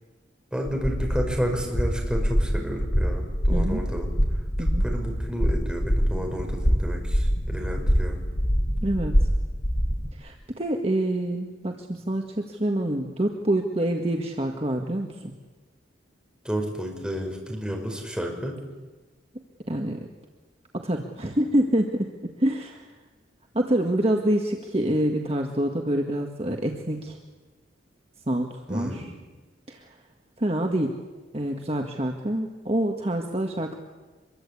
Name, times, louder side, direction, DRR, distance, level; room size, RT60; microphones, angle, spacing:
voice 1, 0.5-4.1 4.8-8.2 16.4-18.6 28.7-29.1, equal, 5° right, 1 dB, 5.5 m, -31 dB
sound 1, 0.7-10.1, equal, 65° left, 4.9 m, -25 dB
voice 2, 3.5-3.8 4.6-4.8 8.8-9.2 10.1-15.3 19.7-20.1 20.7-22.9 23.5-27.2 28.3-29.1 29.7-29.9 30.4-31.0 31.3-33.8, right 1 dB, 30° right, 3 dB, 1.7 m, -26 dB
25.5 x 22.5 x 8.5 m, 1.3 s
head